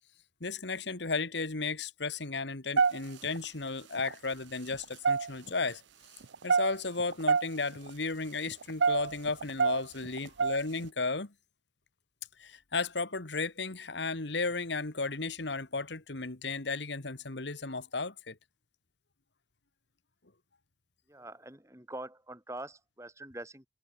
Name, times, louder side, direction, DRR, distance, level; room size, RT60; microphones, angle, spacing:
voice 1, 0.4-5.8 6.4-11.3 12.4-18.4, left 3 dB, 75° left, 1.8 m, -34 dB
sound 1, 2.8-3.4 4.0-4.1 4.7-5.7 6.2-7.5 7.7-7.9 8.5-10.8, right 5 dB, 80° right, 0.7 m, -27 dB
voice 2, 21.1-23.7, right 1 dB, 15° right, 4.9 m, -44 dB
head